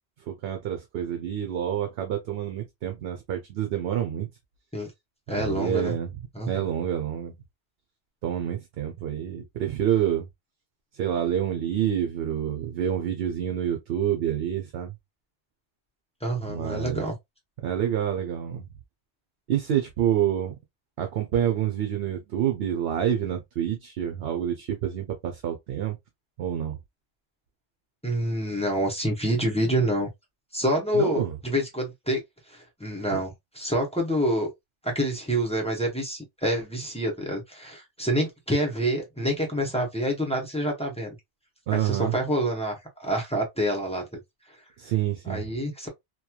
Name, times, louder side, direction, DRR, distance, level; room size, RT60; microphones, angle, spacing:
voice 1, 0.3-4.3 5.3-6.1 6.5-7.3 8.2-10.3 10.9-14.9 16.4-17.0 17.6-18.7 19.5-20.5 21.0-26.0 26.4-26.8 30.9-31.4 33.1-33.2 41.7-42.1 44.8-45.5, right 10 dB, 65° right, 0.8 m, -27 dB
voice 2, 5.3-5.9 6.3-6.7 16.2-17.1 28.0-30.1 30.5-32.2 32.5-34.5 34.8-41.2 41.7-44.2 45.2-45.9, equal, 5° left, 0.7 m, -27 dB
3.0 x 2.3 x 2.2 m
omnidirectional pair, 1.2 m